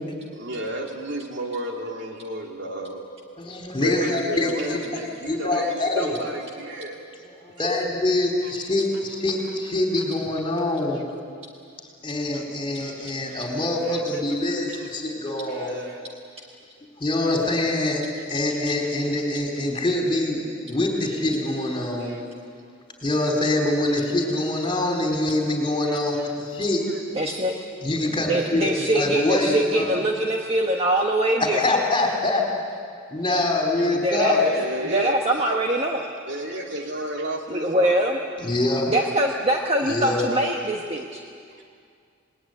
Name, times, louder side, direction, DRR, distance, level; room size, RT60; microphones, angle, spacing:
voice 1, 0.3-3.0 3.8-7.0 7.6-7.8 12.3-12.4 12.8-13.4 13.9-14.0 14.7-14.9 15.5-16.0 22.0-22.2 26.2-26.3 34.3-35.2 36.3-37.9, right 1 dB, 55° right, 0 dB, 3.3 m, -32 dB
voice 2, 3.4-4.8 5.3-6.1 7.2-11.0 12.0-15.9 17.0-18.0 18.3-22.1 23.0-26.8 27.8-30.0 31.4-32.5 33.1-34.5 38.4-38.9 39.8-40.2, left 2 dB, 25° left, 1 dB, 4.0 m, -24 dB
voice 3, 27.1-27.5 28.3-31.6 33.8-34.5 34.8-36.1 37.5-38.2 38.9-41.2, right 1 dB, 30° right, 1 dB, 1.4 m, -23 dB
28.0 x 20.5 x 9.5 m, 2.3 s
head